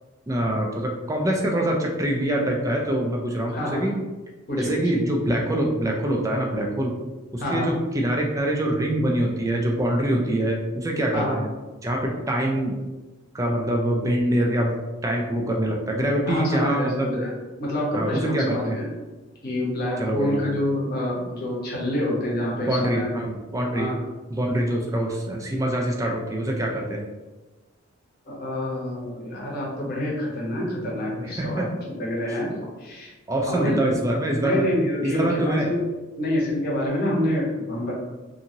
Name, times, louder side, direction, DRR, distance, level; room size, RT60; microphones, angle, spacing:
voice 1, 0.3-4.0 4.6-6.9 7.3-11.5 11.8-12.7 13.3-14.8 15.0-17.2 17.9-18.8 20.0-20.5 22.5-23.9 24.3-27.0 31.2-31.7 32.3-32.4 33.3-34.6 35.0-35.7, right 1 dB, 15° right, 0 dB, 0.4 m, -24 dB
voice 2, 3.5-3.8 4.5-4.7 7.4-7.7 11.1-11.4 16.3-17.3 17.6-18.9 19.4-23.1 23.7-23.9 28.3-33.1 33.5-33.9 34.4-35.8 36.2-37.9, left 1 dB, 45° left, -4 dB, 0.8 m, -27 dB
2.7 x 2.6 x 2.7 m, 1.2 s
head